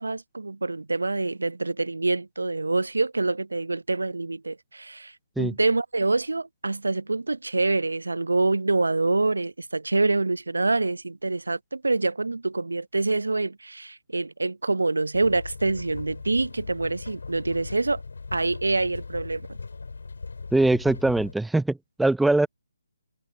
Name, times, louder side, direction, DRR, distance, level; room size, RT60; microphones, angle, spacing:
voice 1, 0.0-5.1 5.4-18.0 18.3-19.5, right 3 dB, 75° right, 0.7 m, -26 dB
sound 1, 15.1-21.3, left 4 dB, 65° left, 3.9 m, -39 dB
voice 2, 20.5-22.5, right 2 dB, ahead, 0.5 m, -22 dB
figure-of-eight pair, 145°, 0 cm